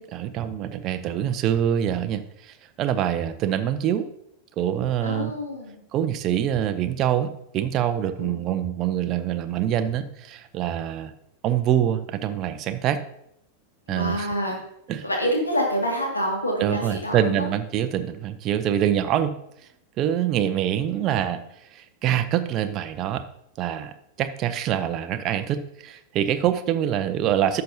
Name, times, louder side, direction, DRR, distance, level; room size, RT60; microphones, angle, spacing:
voice 1, 0.0-4.1 4.6-5.3 5.9-11.1 11.4-13.0 13.9-14.3 14.9-15.0 16.6-19.3 20.0-21.4 21.7-23.2 23.6-23.9 24.2-27.6, right 10 dB, 35° right, 10 dB, 0.6 m, -25 dB
voice 2, 5.0-5.8 8.2-8.4 13.9-14.6 15.0-17.4, equal, 80° left, 0 dB, 2.1 m, -27 dB
11.5 x 6.8 x 2.8 m, 0.78 s
figure-of-eight pair, 90°, 0 cm